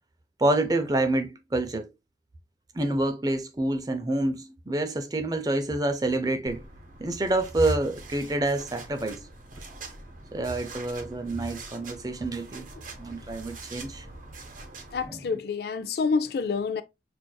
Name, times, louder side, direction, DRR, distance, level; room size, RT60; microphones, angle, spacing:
voice 1, 0.4-1.9 2.7-6.6 7.0-9.2 10.3-12.7 13.0-14.0 15.1-15.2, right 2 dB, 20° right, 0.4 m, -27 dB
sound 1, 6.5-15.1, right 3 dB, 45° right, 0.8 m, -44 dB
voice 2, 14.9-16.8, left 5 dB, 55° left, 0.4 m, -28 dB
6.0 x 2.6 x 2.2 m
head